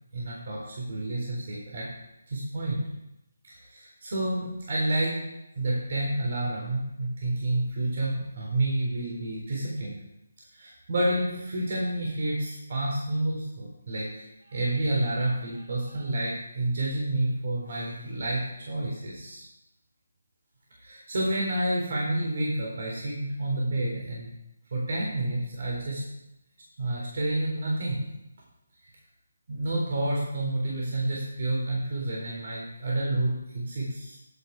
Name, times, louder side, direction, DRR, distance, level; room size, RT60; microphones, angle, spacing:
voice 1, 0.1-1.9 2.3-2.8 3.5-5.2 5.5-10.0 10.5-19.4 20.8-24.3 24.7-26.0 26.8-28.0 29.5-34.2, right 1 dB, 50° right, -3 dB, 3.8 m, -29 dB
11.0 x 8.3 x 4.8 m, 0.88 s
figure-of-eight pair, 160°, 0 cm